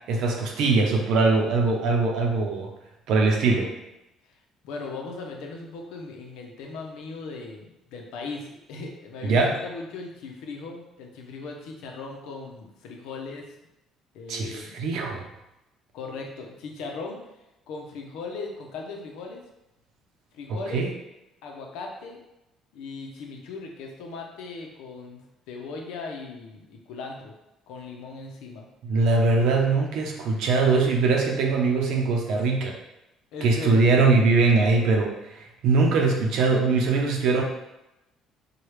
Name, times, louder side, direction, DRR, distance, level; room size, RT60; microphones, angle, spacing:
voice 1, 0.1-2.7 3.1-3.7 9.2-9.5 14.3-15.2 20.7-20.9 28.8-32.7 33.4-37.4, right 3 dB, 60° right, 1 dB, 0.7 m, -22 dB
voice 2, 4.6-13.5 14.1-14.8 15.9-17.2 17.7-19.4 20.3-20.8 21.4-22.2 22.7-25.2 25.5-27.3 27.7-28.7 30.1-30.2 33.3-33.9, left 3 dB, 85° left, 1 dB, 0.7 m, -38 dB
4.7 x 2.3 x 3.2 m, 0.93 s
cardioid pair, 175°, 0 cm